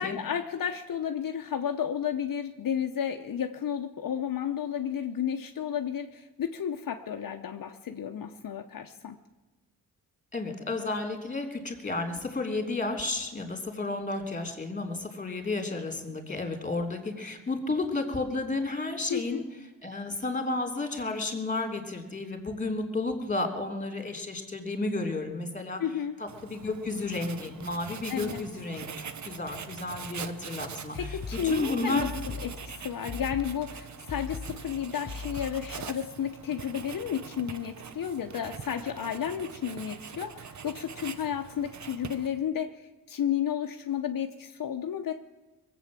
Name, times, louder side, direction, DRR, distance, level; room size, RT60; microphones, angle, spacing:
voice 1, 0.0-9.2 19.1-19.4 25.8-26.2 28.1-28.4 30.9-45.1, left 8 dB, 70° left, 4 dB, 1.0 m, -32 dB
voice 2, 10.3-19.4 19.8-25.8 26.2-28.9 29.2-31.2 31.4-32.1, left 2 dB, 20° left, 5 dB, 3.1 m, -32 dB
Writing, 26.3-42.5, right 6 dB, 55° right, 0.9 m, -43 dB
sound 1, 31.0-35.9, left 5 dB, 40° left, 0.7 m, -40 dB
22.0 x 8.1 x 7.4 m, 1.2 s
wide cardioid pair, 110°, 34 cm